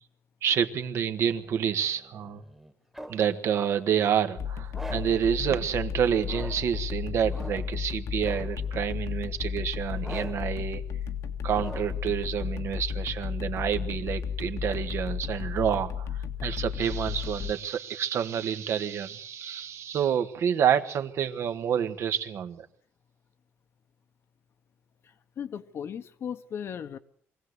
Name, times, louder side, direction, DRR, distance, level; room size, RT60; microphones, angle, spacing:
voice 1, 0.4-2.4 3.1-10.8 11.4-22.7, right 8 dB, 60° right, 1.5 m, -28 dB
sound 1, 1.3-3.3 4.7-5.3 6.2-6.8 7.3-7.8 8.2-8.7 10.0-10.6 11.5-12.1, right 1 dB, 5° right, 1.5 m, -43 dB
sound 2, 4.4-17.5, left 7 dB, 80° left, 1.8 m, -33 dB
voice 2, 25.0-27.0, left 8 dB, 55° left, 1.2 m, -37 dB
24.0 x 16.5 x 8.1 m
cardioid pair, 140°, 5 cm